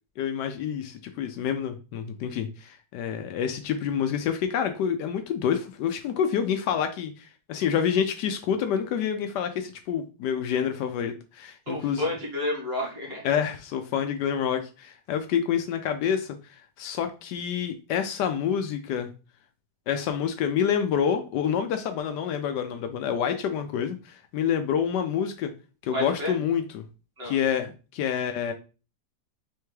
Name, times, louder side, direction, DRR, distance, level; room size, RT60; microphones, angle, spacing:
voice 1, 0.2-12.0 13.2-19.1 19.9-25.5 25.8-26.8 27.2-28.5, left 8 dB, 80° left, 7 dB, 1.2 m, -28 dB
voice 2, 11.7-13.2 25.9-26.3 27.2-27.3, left 1 dB, 40° right, -2 dB, 1.6 m, -30 dB
4.2 x 3.3 x 3.2 m, 0.33 s
omnidirectional pair, 1.8 m